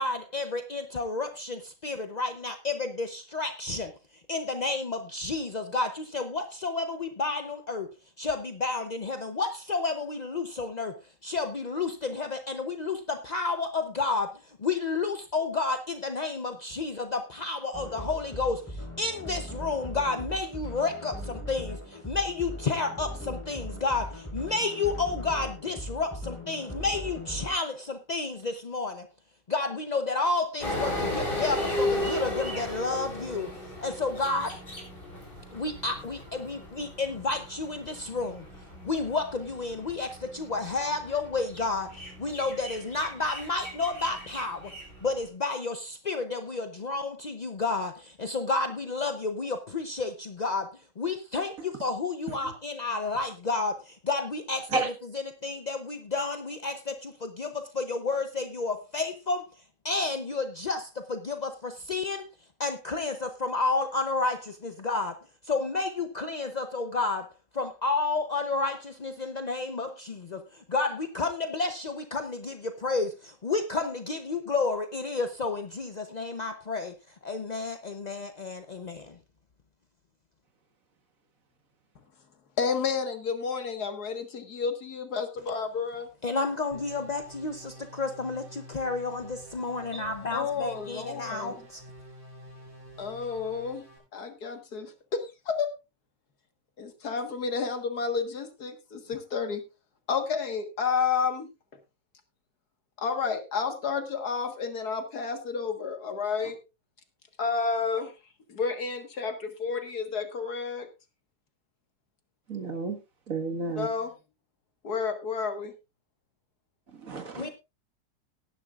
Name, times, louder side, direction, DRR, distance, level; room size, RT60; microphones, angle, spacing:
voice 1, 0.0-29.1 29.5-34.6 35.5-38.5 38.8-44.7 45.0-54.8 55.1-62.3 62.6-79.2 86.2-91.8 117.3-117.5, left 3 dB, 45° left, 0.5 m, -31 dB
sound 1, 17.7-27.5, equal, 5° left, 5.6 m, -39 dB
sound 2, 30.6-45.2, left 1 dB, 30° left, 4.2 m, -36 dB
voice 2, 82.6-86.1 90.3-91.6 93.0-93.8 94.1-95.7 96.8-99.6 100.1-101.5 103.0-106.6 107.4-108.1 108.5-110.9 113.8-114.1 114.8-115.7, left 5 dB, 60° left, 2.1 m, -30 dB
sound 3, 86.7-94.0, equal, 20° right, 6.6 m, -49 dB
voice 3, 112.5-113.0 113.3-113.9 116.9-117.5, right 4 dB, 50° right, 2.0 m, -31 dB
18.0 x 10.5 x 2.5 m
omnidirectional pair, 1.9 m